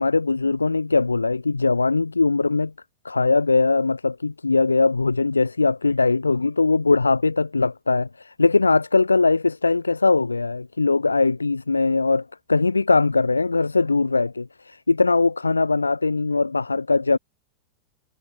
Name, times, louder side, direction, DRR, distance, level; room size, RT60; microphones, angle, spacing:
voice 1, 0.0-2.7 3.0-17.2, left 3 dB, 80° left, 2.6 m, -21 dB
figure-of-eight pair, 90°, 0 cm